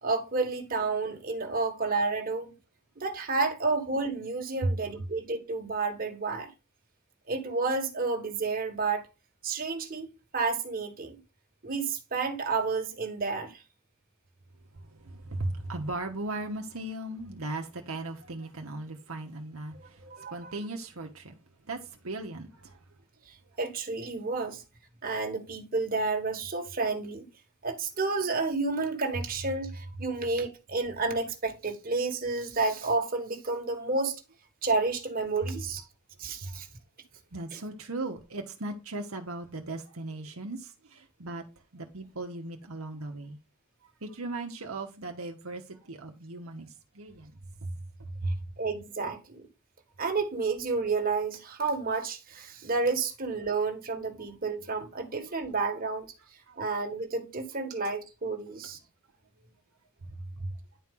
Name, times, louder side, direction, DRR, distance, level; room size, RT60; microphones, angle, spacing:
voice 1, 0.0-2.5 3.0-6.5 7.3-9.1 9.4-10.1 10.3-11.2 11.6-13.6 19.7-20.5 23.3-24.6 25.0-27.3 27.6-34.2 34.6-35.8 36.2-36.7 48.6-49.5 50.0-56.1 56.6-58.8, right 3 dB, 40° right, 1.6 m, -30 dB
voice 2, 14.7-21.4 21.6-22.8 36.4-36.6 37.3-41.4 41.7-43.4 43.8-47.3 47.6-48.4 56.5-56.6 59.4-59.5 60.1-60.6, right 2 dB, 75° right, 1.2 m, -37 dB
10.5 x 4.5 x 3.7 m
head